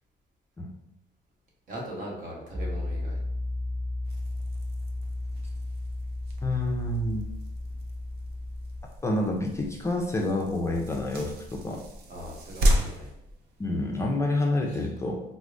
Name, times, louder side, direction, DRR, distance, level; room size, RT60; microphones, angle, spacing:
voice 1, 1.7-3.2 12.1-13.1 14.7-14.8, equal, 55° right, -2 dB, 1.1 m, -39 dB
Piano, 2.5-8.8, left 2 dB, 25° right, 1.3 m, -34 dB
sound 1, 4.0-14.2, equal, 70° right, 0.6 m, -34 dB
voice 2, 6.4-7.2 9.0-11.8 13.6-15.2, left 2 dB, 15° left, 0 dB, 0.4 m, -28 dB
4.4 x 2.0 x 2.5 m, 0.83 s
cardioid pair, 110°, 17 cm